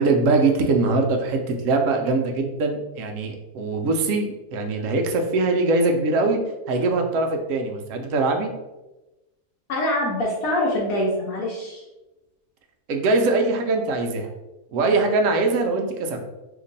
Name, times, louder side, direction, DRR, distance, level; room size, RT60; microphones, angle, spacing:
voice 1, 0.0-6.4 6.7-8.5 12.9-14.3 14.7-16.3, right 3 dB, 70° right, 4 dB, 0.8 m, -22 dB
voice 2, 9.7-11.8, left 1 dB, 70° left, -3 dB, 1.1 m, -24 dB
2.9 x 2.6 x 3.9 m, 1.0 s
omnidirectional pair, 1.6 m